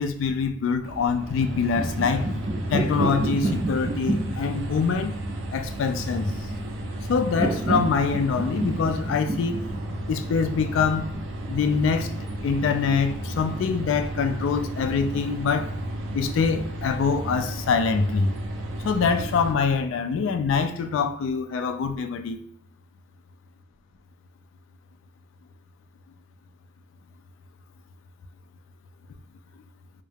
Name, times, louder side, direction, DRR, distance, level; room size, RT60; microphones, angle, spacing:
voice 1, 0.0-2.3 2.7-5.2 5.5-6.3 7.1-9.6 10.1-11.1 11.5-12.1 12.4-15.7 16.1-18.3 18.8-22.4, left 5 dB, 90° left, 0.3 m, -24 dB
sound 1, 0.8-19.5, right 1 dB, 90° right, 0.4 m, -33 dB
sound 2, 1.5-11.1, right 2 dB, 30° right, 0.3 m, -30 dB
2.3 x 2.0 x 3.2 m
head